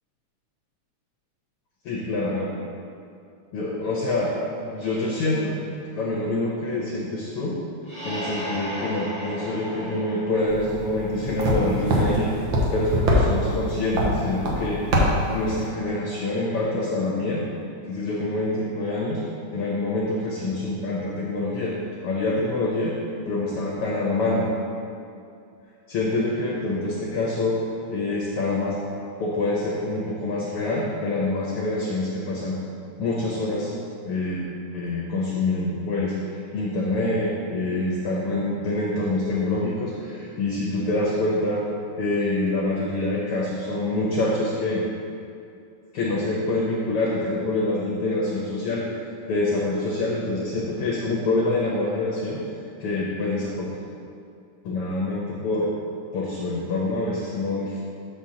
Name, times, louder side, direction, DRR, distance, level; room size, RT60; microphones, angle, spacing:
voice 1, 1.8-2.5 3.5-4.4 4.6-5.6 5.9-7.5 8.0-12.3 12.7-17.4 17.9-19.2 19.5-21.8 22.0-22.9 23.2-24.5 25.9-27.6 27.9-28.8 29.2-32.6 33.0-33.7 34.0-34.4 34.7-36.1 36.5-41.6 42.0-44.8 45.9-48.9 49.3-52.4 52.8-53.7 54.6-55.7 56.1-57.8, left 2 dB, 80° left, -4 dB, 1.3 m, -26 dB
sound 1, 7.8-11.4, equal, 25° right, 1.0 m, -35 dB
sound 2, 10.5-15.7, equal, 70° right, 1.2 m, -24 dB
7.8 x 6.2 x 2.8 m, 2.5 s
omnidirectional pair, 3.4 m